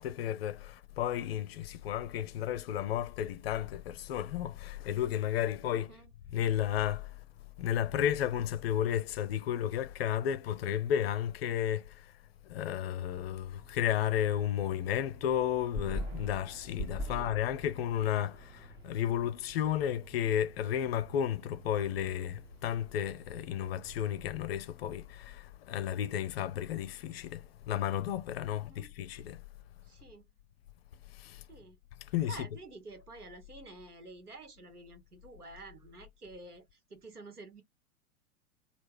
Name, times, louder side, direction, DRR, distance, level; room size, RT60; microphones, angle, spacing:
voice 1, 0.0-5.9 6.3-7.2 7.6-12.1 12.4-29.4 31.1-31.4 32.0-32.5, left 10 dB, 45° left, 0.5 m, -33 dB
voice 2, 5.7-6.1 17.1-17.3 28.7-28.9 29.8-30.3 31.5-31.8 32.3-37.6, right 3 dB, 85° right, 1.3 m, -50 dB
sound 1, 13.6-24.3, equal, 10° right, 0.4 m, -45 dB
3.2 x 2.5 x 3.3 m
figure-of-eight pair, 100°, 44 cm